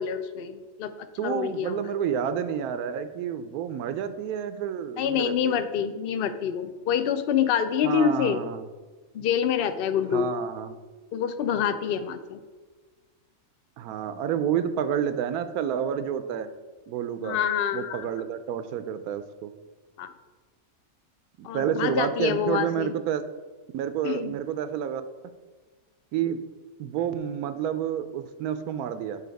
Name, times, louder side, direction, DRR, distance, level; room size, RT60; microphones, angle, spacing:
voice 1, 0.0-1.8 5.0-8.4 9.1-10.3 11.1-12.4 17.2-18.1 20.0-20.1 21.4-22.9 24.0-24.3, left 8 dB, 75° left, 10 dB, 0.5 m, -26 dB
voice 2, 1.2-5.6 7.8-8.6 10.1-10.8 13.8-16.5 16.9-17.4 17.7-19.5 21.4-23.2 23.7-25.0 26.1-26.4 26.8-29.2, right 9 dB, 90° right, 10 dB, 1.1 m, -29 dB
8.4 x 3.7 x 5.2 m, 1.3 s
omnidirectional pair, 1.5 m